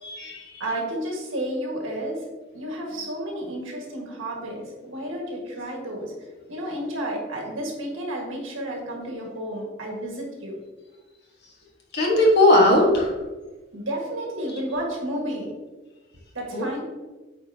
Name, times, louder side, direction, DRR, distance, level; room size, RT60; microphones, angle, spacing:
voice 1, 0.0-0.6 11.9-13.1 14.5-14.6 16.5-16.8, left 1 dB, 55° left, -1 dB, 1.4 m, -19 dB
voice 2, 0.6-2.2 2.5-6.1 6.5-10.6 13.7-15.5 16.3-16.8, right 1 dB, 75° right, -1 dB, 1.6 m, -31 dB
8.6 x 4.2 x 2.8 m, 1.2 s
head